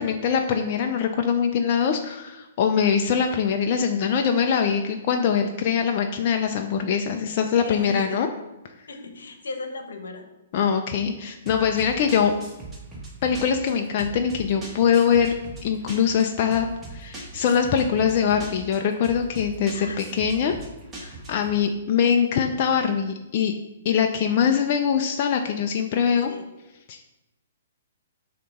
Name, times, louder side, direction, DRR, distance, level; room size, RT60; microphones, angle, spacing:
voice 1, 0.0-8.3 10.5-12.3 13.2-15.3 15.6-20.5 21.0-23.5 23.8-26.3 26.9-27.0, left 7 dB, 45° left, 4 dB, 0.4 m, -23 dB
voice 2, 7.6-8.2 8.9-10.2 19.7-20.1 26.0-26.4, left 3 dB, 80° left, 5 dB, 1.0 m, -37 dB
sound 1, 11.5-21.6, right 3 dB, 15° right, 1.4 m, -40 dB
6.7 x 2.9 x 5.3 m, 0.99 s
hypercardioid pair, 135°, 0 cm